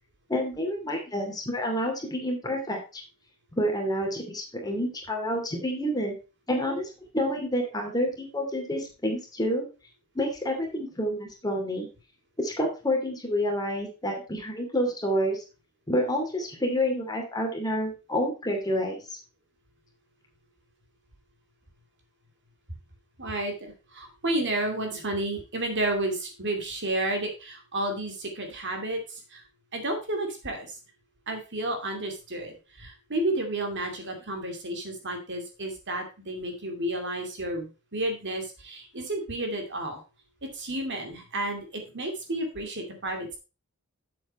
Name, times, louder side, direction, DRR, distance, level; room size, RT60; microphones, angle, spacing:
voice 1, 0.3-3.0 3.6-6.2 6.5-6.9 7.1-9.7 10.1-11.9 12.4-15.4 15.9-19.0, equal, 15° left, 1 dB, 2.6 m, -28 dB
voice 2, 23.2-29.4 29.7-30.8 31.3-40.0 40.4-43.4, right 1 dB, 55° right, 4 dB, 2.4 m, -31 dB
7.8 x 7.6 x 4.3 m, 0.31 s
head